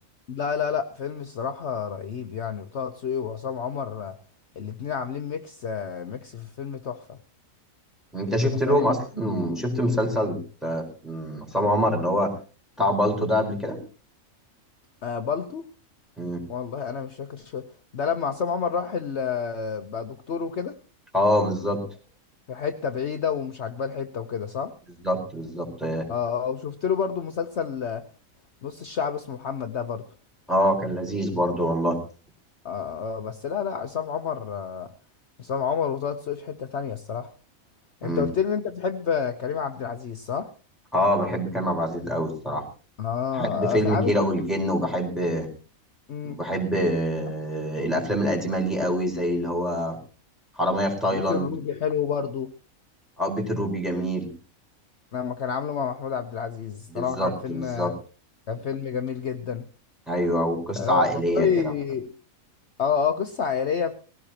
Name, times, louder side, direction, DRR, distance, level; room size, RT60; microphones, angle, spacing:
voice 1, 0.3-4.2 4.6-7.2 8.3-8.8 15.0-15.6 16.5-17.6 17.9-20.8 22.5-24.7 26.1-28.0 28.6-30.0 32.6-34.9 35.4-37.3 38.0-40.5 43.0-44.3 46.1-46.4 51.1-52.5 55.1-57.9 58.5-59.6 60.8-62.1 62.8-64.0, left 7 dB, 55° left, 7 dB, 1.1 m, -29 dB
voice 2, 8.1-12.4 12.8-13.8 16.2-16.4 21.1-21.9 25.0-26.1 30.5-32.0 38.0-38.2 40.9-42.7 43.3-45.5 46.2-50.0 50.6-51.5 53.2-54.3 56.9-57.9 60.1-61.7, equal, ahead, 0 dB, 4.5 m, -25 dB
19.5 x 17.0 x 2.9 m, 0.36 s
omnidirectional pair, 1.4 m